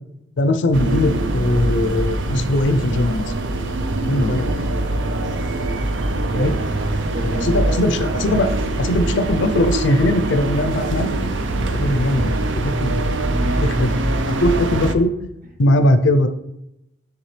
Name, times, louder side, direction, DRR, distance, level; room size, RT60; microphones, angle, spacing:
voice 1, 0.4-3.3 4.0-4.7 6.1-6.5 7.2-8.5 8.8-12.4 12.6-13.1 13.4-15.1 15.6-16.3, left 1 dB, 65° left, 8 dB, 0.5 m, -20 dB
sound 1, 0.7-14.9, right 2 dB, 70° right, 0.6 m, -23 dB
voice 2, 3.9-4.4 5.1-5.4 6.2-7.7 8.1-8.7 12.0-12.3 14.4-14.7, equal, 50° right, 1 dB, 1.1 m, -33 dB
9.5 x 3.4 x 3.3 m, 0.87 s
head